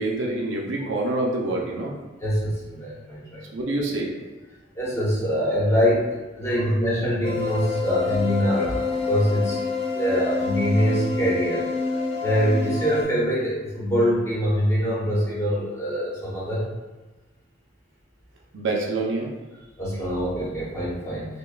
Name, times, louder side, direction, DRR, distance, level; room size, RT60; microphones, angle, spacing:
voice 1, 0.0-1.9 3.5-4.1 12.0-12.1 18.5-19.3, right 2 dB, 75° right, -1 dB, 0.6 m, -26 dB
voice 2, 2.2-3.4 4.7-9.6 9.9-11.7 12.2-16.6 19.8-21.4, equal, 15° left, -8 dB, 1.0 m, -24 dB
sound 1, 7.2-13.0, left 4 dB, 30° left, 0.4 m, -28 dB
5.1 x 2.2 x 2.4 m, 1.2 s
head